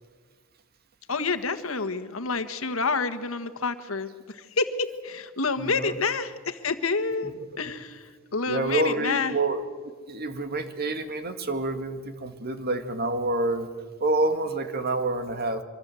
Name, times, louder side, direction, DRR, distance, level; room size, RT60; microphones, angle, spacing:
voice 1, 1.1-9.4, left 4 dB, 90° left, 9 dB, 1.6 m, -28 dB
voice 2, 5.6-5.9 7.2-7.4 8.5-9.6 10.0-13.7 14.0-15.6, right 2 dB, 50° right, 8 dB, 2.1 m, -28 dB
25.0 x 24.5 x 7.8 m, 1.5 s
head